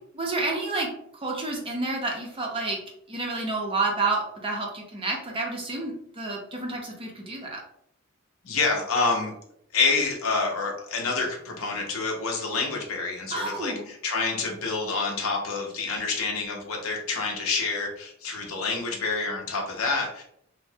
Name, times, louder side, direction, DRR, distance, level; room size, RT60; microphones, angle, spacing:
voice 1, 0.1-0.9 1.2-2.8 3.1-7.6 13.3-13.9, right 3 dB, 25° right, 0 dB, 0.6 m, -29 dB
voice 2, 8.4-9.3 9.7-20.2, left 4 dB, 70° left, 1 dB, 0.7 m, -27 dB
3.1 x 2.0 x 2.7 m, 0.70 s
head